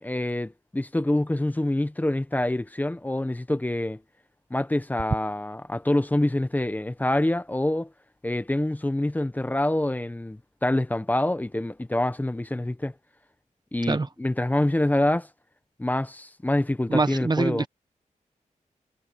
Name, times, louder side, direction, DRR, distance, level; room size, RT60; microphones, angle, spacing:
voice 1, 0.0-4.0 4.5-7.9 8.2-12.9 13.7-15.3 15.8-17.7, left 1 dB, 10° left, 1.0 m, -26 dB
voice 2, 16.9-17.7, right 3 dB, 30° right, 1.0 m, -24 dB
wide cardioid pair, 120°, 13 cm